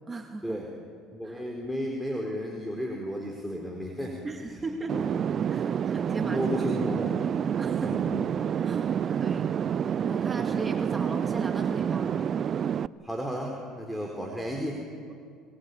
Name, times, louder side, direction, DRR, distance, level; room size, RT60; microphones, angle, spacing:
voice 1, 0.1-0.6 1.2-1.4 4.2-5.1 5.5-6.9 7.6-8.1 8.6-12.2, right 3 dB, 25° right, 3 dB, 2.3 m, -38 dB
voice 2, 1.2-4.2 4.5-4.6 6.2-7.2 7.8-8.2 13.0-14.8, equal, ahead, 1 dB, 4.2 m, -33 dB
sound 1, 4.9-12.9, right 8 dB, 45° right, 0.5 m, -28 dB
26.0 x 21.0 x 8.5 m, 2.2 s
hypercardioid pair, 75°, 0 cm